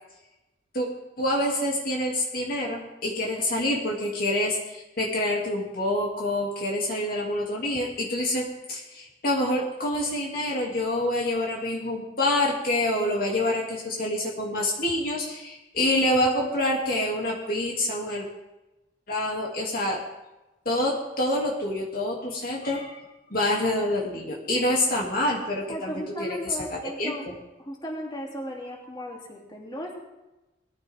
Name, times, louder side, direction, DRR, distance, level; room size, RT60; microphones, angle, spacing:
voice 1, 1.2-18.2 19.1-20.0 20.6-23.0 23.3-27.1, left 1 dB, 50° left, -2 dB, 2.7 m, -27 dB
voice 2, 25.7-27.3 27.6-30.0, equal, 25° left, -2 dB, 3.2 m, -36 dB
21.0 x 14.5 x 3.7 m, 1.0 s
head